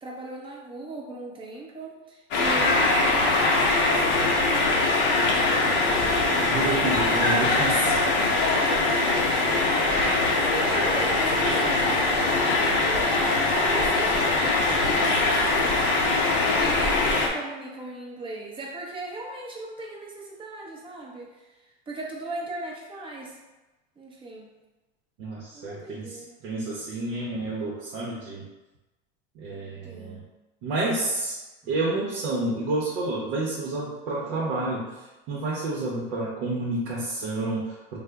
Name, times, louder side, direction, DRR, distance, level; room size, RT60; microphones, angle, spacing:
voice 1, 0.0-14.3 14.7-15.8 16.3-21.5 21.9-23.4 24.0-24.5 25.5-26.4 29.8-30.3, right 2 dB, 15° right, -2 dB, 0.6 m, -37 dB
sound 1, 2.3-17.3, left 3 dB, 40° left, 0.6 m, -22 dB
voice 2, 6.4-7.7 25.2-28.4 29.4-30.2 30.6-31.4 31.7-34.8 35.3-38.0, right 2 dB, 65° right, -5 dB, 0.7 m, -29 dB
3.4 x 2.0 x 3.4 m, 1.1 s
supercardioid pair, 130°, 29 cm